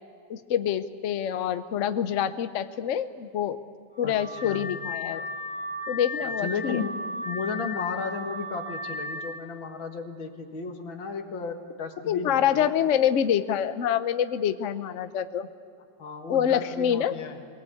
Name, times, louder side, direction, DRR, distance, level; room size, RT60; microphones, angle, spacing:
voice 1, 0.3-3.6 4.0-5.3 5.9-6.8 12.1-15.5 16.3-17.1, left 9 dB, 55° left, 10 dB, 0.9 m, -26 dB
Car / Alarm, 3.9-9.4, left 2 dB, 35° left, 1.9 m, -35 dB
voice 2, 4.0-4.7 6.2-12.7 16.0-17.4, left 5 dB, 85° left, 4 dB, 2.5 m, -34 dB
23.5 x 18.5 x 8.6 m, 2.4 s
omnidirectional pair, 2.1 m